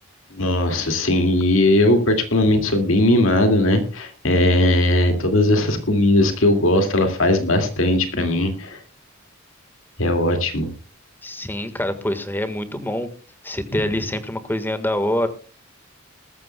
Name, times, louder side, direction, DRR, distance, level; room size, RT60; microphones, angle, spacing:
voice 1, 0.3-8.8 10.0-10.7 13.7-13.8, left 1 dB, 70° left, 6 dB, 2.3 m, -18 dB
voice 2, 11.2-13.1 13.4-15.3, left 1 dB, 10° left, 10 dB, 1.5 m, -25 dB
21.0 x 14.0 x 2.3 m, 0.34 s
head